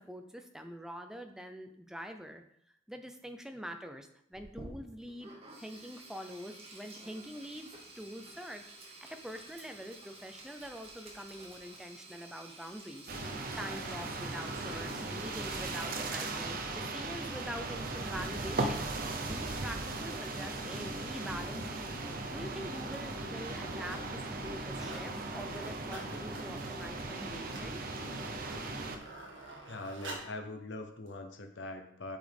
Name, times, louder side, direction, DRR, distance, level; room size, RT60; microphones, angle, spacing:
voice 1, 0.0-2.4 2.9-27.8, equal, 5° right, 5 dB, 0.6 m, -45 dB
Sink (filling or washing), 4.3-16.4, right 2 dB, 30° right, 1.6 m, -52 dB
sound 1, 13.1-29.0, right 2 dB, 50° right, 0.8 m, -38 dB
sound 2, 22.7-23.1 23.4-24.1 24.4-25.1 25.4-30.4 31.1-31.2, right 2 dB, 85° right, 1.7 m, -49 dB
voice 2, 29.7-32.2, left 2 dB, 70° left, 5 dB, 0.8 m, -42 dB
8.3 x 6.1 x 3.5 m, 0.71 s
head